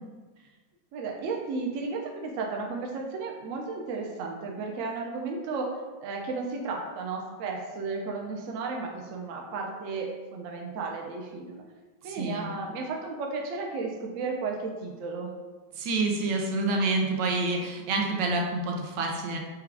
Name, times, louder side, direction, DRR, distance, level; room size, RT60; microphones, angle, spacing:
voice 1, 0.9-5.7 6.0-11.6 12.0-15.3, right 4 dB, 65° right, 1 dB, 0.8 m, -34 dB
voice 2, 12.0-12.5 15.8-19.4, right 3 dB, 85° right, 1 dB, 1.3 m, -28 dB
4.9 x 2.3 x 3.4 m, 1.3 s
omnidirectional pair, 1.9 m